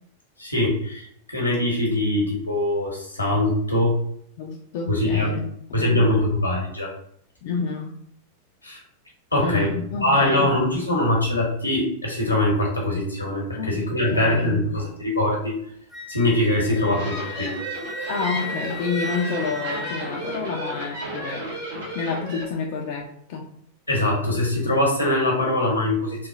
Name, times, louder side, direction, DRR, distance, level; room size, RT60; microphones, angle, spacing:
voice 1, 0.4-1.1 1.3-4.0 4.9-5.4 5.7-6.9 8.6-8.8 9.3-9.7 10.0-15.5 16.1-17.5 23.9-26.3, left 1 dB, 80° left, -2 dB, 0.9 m, -22 dB
voice 2, 4.4-5.5 5.8-6.1 7.4-8.0 9.4-10.5 13.6-14.6 18.1-21.4 21.9-23.5, left 5 dB, 50° left, -1 dB, 0.4 m, -29 dB
Wind instrument woodwind instrument, 15.9-20.5, left 1 dB, 5° left, 0.6 m, -35 dB
sound 1, 16.7-22.4, right 1 dB, 60° right, 1.1 m, -33 dB
3.0 x 2.1 x 2.5 m, 0.68 s
figure-of-eight pair, 90°, 0 cm